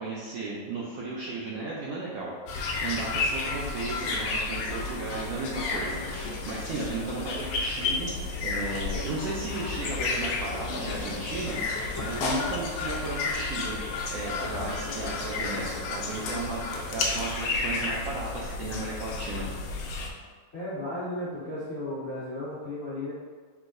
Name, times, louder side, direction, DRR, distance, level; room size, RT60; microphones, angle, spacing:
voice 1, 0.0-19.5, right 2 dB, 80° right, -5 dB, 1.3 m, -35 dB
sound 1, 2.5-20.1, left 3 dB, 90° left, 1.3 m, -32 dB
voice 2, 20.5-23.1, left 1 dB, 70° left, -12 dB, 0.6 m, -34 dB
4.8 x 3.5 x 2.6 m, 1.5 s
omnidirectional pair, 3.4 m